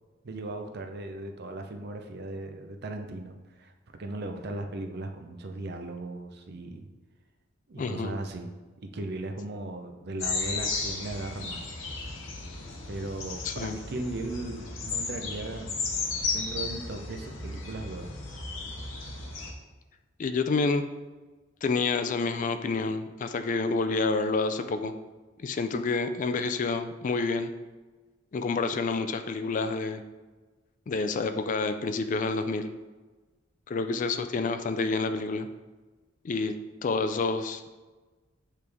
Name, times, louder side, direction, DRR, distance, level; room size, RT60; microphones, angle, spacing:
voice 1, 0.2-6.9 7.7-8.5 8.8-11.7 12.9-15.8 16.3-18.2, right 2 dB, 55° right, 5 dB, 0.6 m, -37 dB
voice 2, 7.8-8.1 13.4-13.8 20.2-20.8 21.6-24.9 25.4-27.5 28.3-30.0 30.9-32.7 33.7-35.5 36.2-36.5 36.8-37.8, left 3 dB, 40° left, 9 dB, 0.3 m, -28 dB
sound 1, 10.2-19.5, left 3 dB, 90° left, 0.9 m, -34 dB
8.3 x 3.3 x 3.5 m, 1.3 s
head